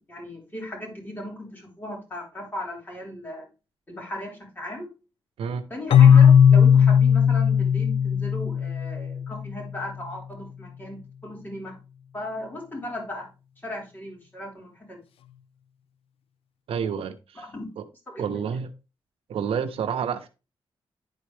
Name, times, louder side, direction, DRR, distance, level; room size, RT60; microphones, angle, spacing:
voice 1, 0.1-3.5 3.9-4.9 5.7-11.8 12.1-13.3 13.6-15.0 17.4-17.7 18.1-18.3, left 1 dB, 20° left, 3.8 m, -37 dB
Keyboard (musical), 5.9-9.6, left 8 dB, 80° left, 0.5 m, -17 dB
voice 2, 16.7-17.4 17.8-17.9 18.2-18.7 19.3-20.3, right 7 dB, 90° right, 0.7 m, -29 dB
10.5 x 4.4 x 3.3 m
cardioid pair, 90°, 9 cm